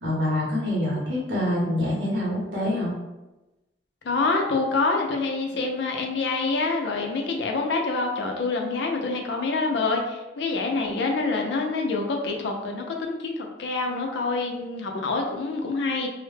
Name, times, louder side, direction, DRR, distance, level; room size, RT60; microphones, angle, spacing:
voice 1, 0.0-2.9, left 1 dB, 85° right, -4 dB, 0.8 m, -26 dB
voice 2, 4.0-16.1, left 3 dB, 80° left, 2 dB, 0.4 m, -26 dB
2.1 x 2.0 x 3.2 m, 1.0 s
head